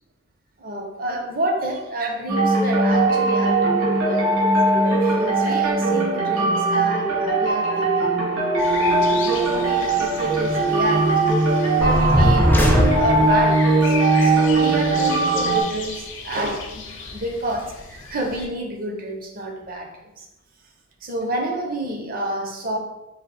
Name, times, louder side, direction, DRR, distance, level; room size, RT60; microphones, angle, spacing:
voice 1, 0.6-8.2 8.7-11.4 11.7-20.3 21.0-22.8, right 1 dB, 45° right, 2 dB, 0.6 m, -29 dB
sound 1, 2.3-15.6, right 2 dB, 65° right, 1.3 m, -20 dB
sound 2, 8.6-18.5, left 4 dB, 65° left, 0.6 m, -36 dB
sound 3, 11.8-13.5, equal, 10° left, 0.4 m, -19 dB
4.0 x 2.4 x 4.0 m, 0.98 s
head